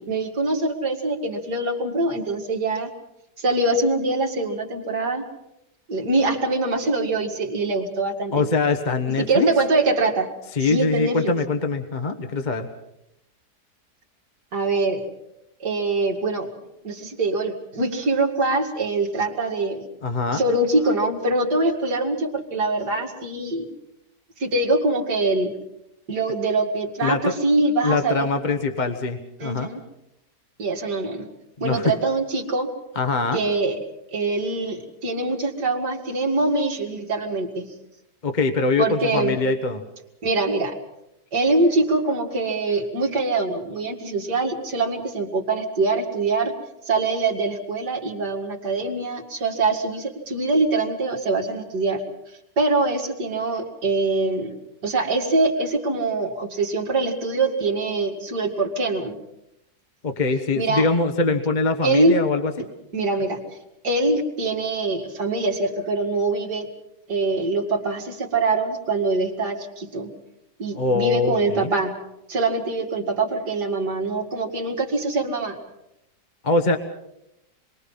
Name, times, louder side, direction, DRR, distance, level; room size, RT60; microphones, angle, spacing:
voice 1, 0.0-2.9 3.4-5.3 5.9-8.5 9.2-10.3 10.6-11.3 14.5-15.0 15.6-16.5 16.8-19.9 20.3-23.6 24.4-25.6 26.1-28.3 29.4-29.8 30.6-31.3 31.6-32.7 33.3-33.8 34.1-37.7 38.8-39.4 40.2-40.8 41.3-46.5 46.9-52.0 52.6-54.5 54.8-59.2 60.6-60.9 61.8-62.1 62.9-63.4 63.8-66.7 67.1-70.1 70.6-71.9 72.3-75.6, right 2 dB, 75° right, 2 dB, 3.0 m, -23 dB
voice 2, 8.3-9.5 10.5-12.7 20.0-20.4 27.0-27.3 27.8-29.7 31.6-31.9 32.9-33.4 38.2-39.8 60.0-62.7 70.8-71.7 76.4-76.8, left 3 dB, 30° left, 6 dB, 1.2 m, -23 dB
27.0 x 22.0 x 5.6 m, 0.85 s
omnidirectional pair, 1.8 m